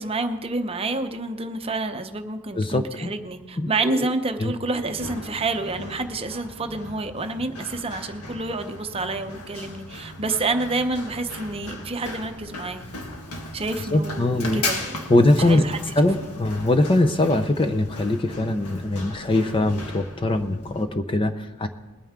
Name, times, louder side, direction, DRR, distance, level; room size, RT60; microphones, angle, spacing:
voice 1, 0.0-12.8 13.5-15.9, right 3 dB, 25° right, 7 dB, 0.7 m, -28 dB
voice 2, 2.5-3.1 3.6-4.1 4.4-4.5 13.9-14.6 15.1-15.6 16.0-21.7, left 2 dB, 25° left, 9 dB, 0.5 m, -22 dB
Run, 4.8-20.8, left 2 dB, 80° left, 1.7 m, -37 dB
21.0 x 9.0 x 3.6 m, 1.2 s
head